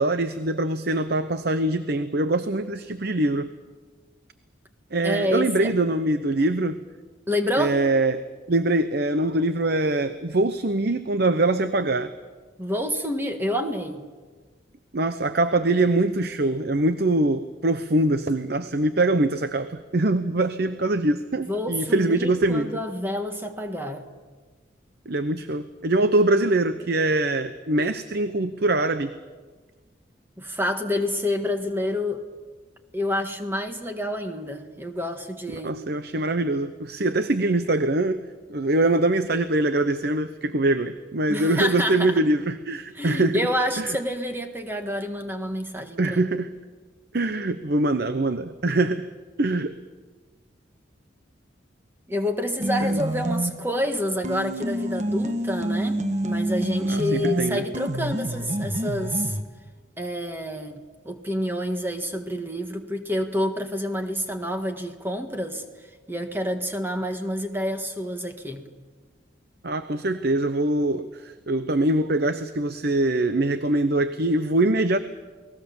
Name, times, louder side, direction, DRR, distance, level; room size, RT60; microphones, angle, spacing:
voice 1, 0.0-3.5 4.9-6.8 7.6-8.2 8.5-12.1 14.9-22.7 25.1-29.1 35.6-38.2 38.5-43.5 43.8-44.0 46.0-46.5 47.1-49.1 49.4-49.8 52.8-53.0 56.9-57.6 69.6-75.0, right 2 dB, 55° right, 11 dB, 0.8 m, -23 dB
voice 2, 5.0-5.7 7.3-7.8 12.6-14.1 21.5-24.1 30.4-32.2 32.9-35.8 41.3-42.2 42.9-46.2 52.1-59.4 60.0-68.7, left 1 dB, 10° right, 5 dB, 1.6 m, -28 dB
sound 1, 52.6-53.8 54.2-59.4, right 1 dB, 40° right, 1.3 m, -27 dB
29.0 x 19.5 x 7.2 m, 1.4 s
head